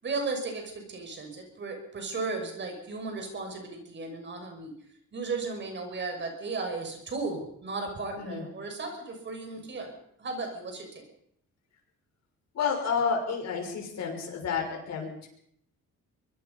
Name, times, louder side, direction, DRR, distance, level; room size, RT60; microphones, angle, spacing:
voice 1, 0.0-4.7 5.1-11.0, right 3 dB, 35° right, 4 dB, 6.0 m, -35 dB
voice 2, 8.1-8.5 12.5-15.3, left 6 dB, 55° left, 1 dB, 6.2 m, -30 dB
24.0 x 21.0 x 5.5 m, 0.69 s
cardioid pair, 160°, 31 cm